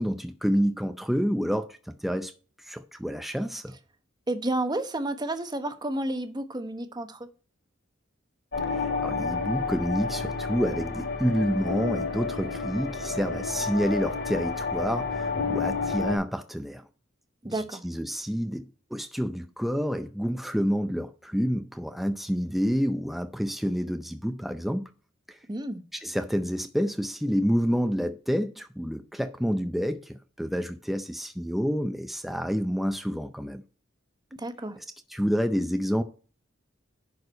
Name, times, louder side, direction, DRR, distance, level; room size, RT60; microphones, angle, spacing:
voice 1, 0.0-2.3 2.6-3.8 8.7-16.9 17.4-24.8 25.3-25.4 25.9-33.6 34.8-34.9 35.1-36.0, equal, ahead, 0.5 m, -28 dB
voice 2, 4.3-7.3 17.4-17.8 25.5-25.8 34.4-34.8, right 1 dB, 20° right, 1.0 m, -31 dB
sound 1, 8.5-16.2, left 4 dB, 70° left, 3.1 m, -30 dB
10.5 x 4.7 x 5.3 m
head